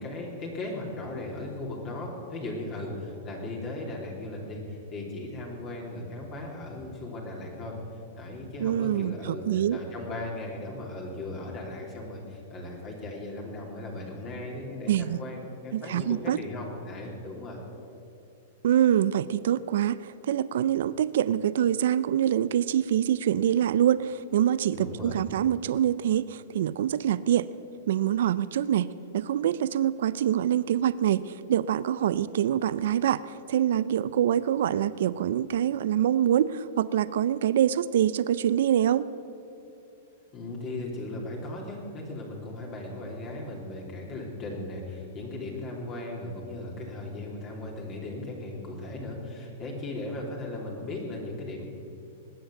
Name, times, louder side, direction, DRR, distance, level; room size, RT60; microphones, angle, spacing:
voice 1, 0.0-7.8 8.2-17.6 24.7-25.2 40.3-51.6, left 2 dB, 35° left, -1 dB, 3.1 m, -37 dB
voice 2, 8.6-9.8 14.9-15.2 15.7-16.4 18.6-27.5 27.9-39.1, right 10 dB, 70° right, 16 dB, 0.5 m, -25 dB
20.0 x 7.8 x 7.7 m, 2.9 s
hypercardioid pair, 130°, 0 cm